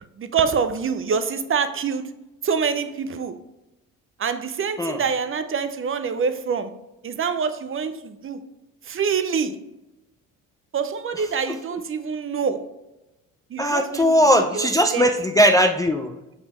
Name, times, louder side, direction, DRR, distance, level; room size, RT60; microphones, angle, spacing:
voice 1, 0.2-2.0 2.4-3.4 4.2-6.7 7.0-8.4 8.8-9.5 10.7-12.6 13.5-14.1 14.3-14.7 14.9-15.0, right 6 dB, 30° right, 10 dB, 0.6 m, -25 dB
voice 2, 11.2-11.5 13.6-16.2, equal, 10° left, 5 dB, 0.4 m, -19 dB
6.0 x 5.1 x 3.0 m, 0.98 s
hypercardioid pair, 60°, 40 cm